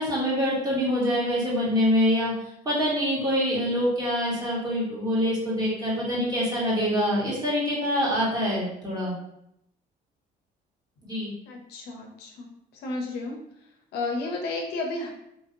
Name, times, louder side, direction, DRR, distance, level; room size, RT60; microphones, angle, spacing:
voice 1, 0.0-2.3 2.6-9.1 11.0-11.3, equal, 25° right, -6 dB, 1.4 m, -25 dB
voice 2, 11.5-12.5 12.8-13.4 13.9-15.1, left 2 dB, 80° left, 1 dB, 0.7 m, -32 dB
3.2 x 2.6 x 2.7 m, 0.78 s
cardioid pair, 110°, 17 cm